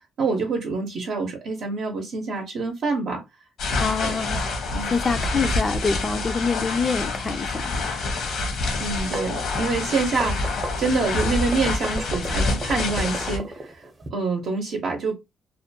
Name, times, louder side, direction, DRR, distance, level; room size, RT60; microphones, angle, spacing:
voice 1, 0.2-3.2 4.0-4.1 4.7-4.9 8.8-13.8 14.1-15.1, right 3 dB, 70° right, 0.7 m, -26 dB
sound 1, 3.6-13.4, left 3 dB, 75° left, 0.9 m, -27 dB
voice 2, 3.8-4.4 4.8-7.6, left 4 dB, 35° left, 0.3 m, -25 dB
sound 2, 8.9-14.1, right 2 dB, 35° right, 0.7 m, -34 dB
2.5 x 2.2 x 2.6 m
cardioid pair, 90°, 0 cm